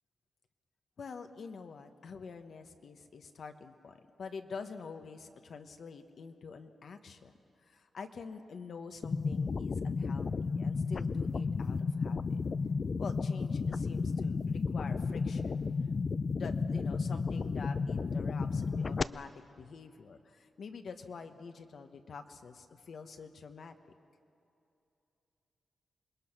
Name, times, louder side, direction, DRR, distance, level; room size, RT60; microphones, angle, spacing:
voice 1, 1.0-7.3 7.6-12.4 13.0-15.7 16.3-19.3 19.6-23.7, left 5 dB, 60° left, 7 dB, 1.1 m, -46 dB
sound 1, 9.0-19.0, left 4 dB, 40° left, 0.4 m, -33 dB
26.5 x 21.0 x 6.0 m, 2.8 s
wide cardioid pair, 145°, 0 cm